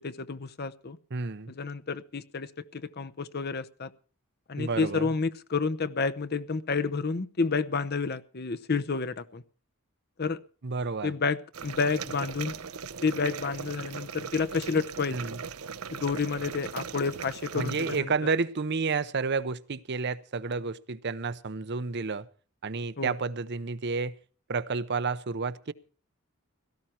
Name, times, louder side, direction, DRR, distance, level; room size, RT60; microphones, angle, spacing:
voice 1, 0.0-1.0 1.5-3.9 4.5-9.4 10.2-10.4 11.0-12.6 13.0-15.2 15.9-18.1 23.0-23.1, left 4 dB, 45° left, 0.8 m, -30 dB
voice 2, 1.1-1.5 4.6-5.1 10.6-11.1 15.1-15.4 17.5-22.3 22.6-24.2 24.5-25.7, right 4 dB, 50° right, 0.7 m, -30 dB
sound 1, 11.5-18.0, right 6 dB, 85° right, 0.8 m, -39 dB
17.0 x 14.0 x 4.4 m
head